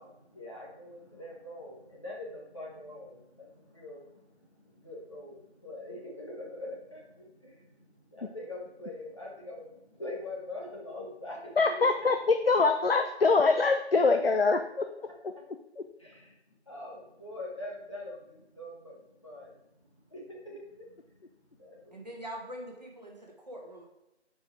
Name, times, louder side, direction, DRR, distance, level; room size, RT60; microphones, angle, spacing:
voice 1, 0.0-7.7 8.1-11.6 16.0-16.3 16.7-19.0 19.2-19.5 20.1-20.9 21.6-21.9, left 1 dB, 25° left, -4 dB, 1.4 m, -43 dB
voice 2, 11.6-15.1, left 4 dB, 60° left, 7 dB, 0.5 m, -24 dB
voice 3, 21.9-23.9, equal, 40° right, -1 dB, 1.3 m, -43 dB
6.0 x 4.8 x 4.7 m, 0.92 s
figure-of-eight pair, 170°, 34 cm